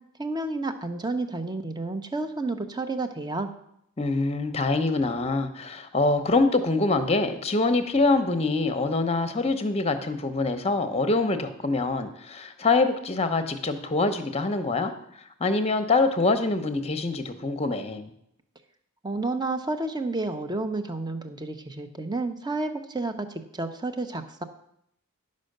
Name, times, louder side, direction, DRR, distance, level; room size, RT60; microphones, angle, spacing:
voice 1, 0.2-3.5 19.0-24.4, right 2 dB, 20° right, 8 dB, 0.7 m, -30 dB
voice 2, 4.0-14.9 15.4-18.1, left 3 dB, 30° left, 8 dB, 0.8 m, -25 dB
11.5 x 5.4 x 6.6 m, 0.75 s
head